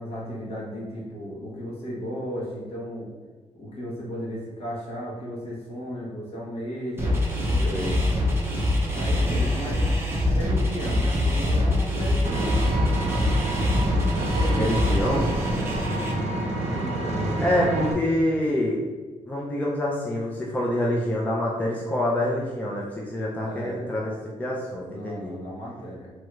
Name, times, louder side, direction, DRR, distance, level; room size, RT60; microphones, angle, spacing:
voice 1, 0.0-3.1 3.6-7.8 8.9-9.9 10.2-12.5 14.1-15.8 16.1-17.7 23.4-23.9 24.9-26.1, equal, 55° left, -6 dB, 1.1 m, -35 dB
sound 1, 7.0-16.1, left 1 dB, 20° right, 0.7 m, -24 dB
Vehicle, 12.2-17.9, right 2 dB, 65° right, 0.5 m, -28 dB
voice 2, 14.6-15.3 17.4-18.8 19.3-25.4, left 1 dB, 15° left, -3 dB, 0.4 m, -26 dB
3.1 x 2.3 x 3.0 m, 1.4 s
cardioid pair, 125°, 12 cm